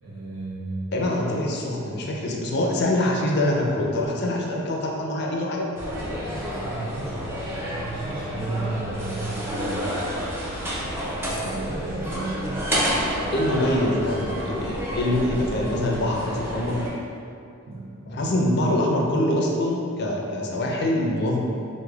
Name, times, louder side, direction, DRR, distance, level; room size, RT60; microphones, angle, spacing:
voice 1, 0.0-0.9 6.3-10.1 11.1-12.6 17.7-18.3, right 2 dB, 55° right, -12 dB, 0.6 m, -33 dB
voice 2, 0.9-5.7 13.3-16.8 18.1-21.4, left 1 dB, 55° left, -1 dB, 0.4 m, -24 dB
sound 1, 5.8-16.9, equal, 10° right, 0.4 m, -30 dB
4.8 x 2.1 x 2.3 m, 2.6 s
head